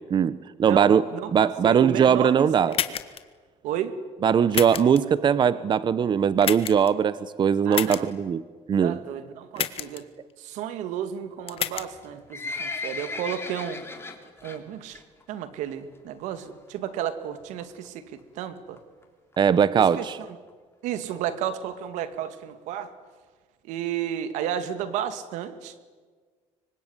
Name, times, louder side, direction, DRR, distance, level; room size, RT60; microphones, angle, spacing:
voice 1, 0.1-1.0 1.3-2.7 4.2-8.4 8.7-9.0 19.4-20.2, right 7 dB, 40° right, 16 dB, 0.8 m, -20 dB
voice 2, 0.7-2.3 2.6-2.8 3.6-4.0 7.6-8.1 8.8-10.1 10.4-13.8 14.4-15.0 15.3-18.8 19.8-20.0 20.8-22.9 23.6-25.8, right 10 dB, 85° right, 11 dB, 2.3 m, -32 dB
sound 1, 2.7-3.2 4.5-5.0 6.4-6.9 7.7-8.0 9.6-10.0 11.5-11.9, left 9 dB, 50° left, 1.7 m, -29 dB
Livestock farm animals working animals, 11.9-14.6 14.9-15.2 15.5-15.6 16.3-16.4 16.7-16.8 17.0-17.1 17.6-17.9 18.4-18.5 18.8-18.9 19.0-19.1 19.3-19.4 19.9-20.0 20.5-20.6 21.0-21.1, left 4 dB, 20° left, 3.5 m, -35 dB
25.5 x 24.0 x 9.7 m, 1.5 s
cardioid pair, 110°, 12 cm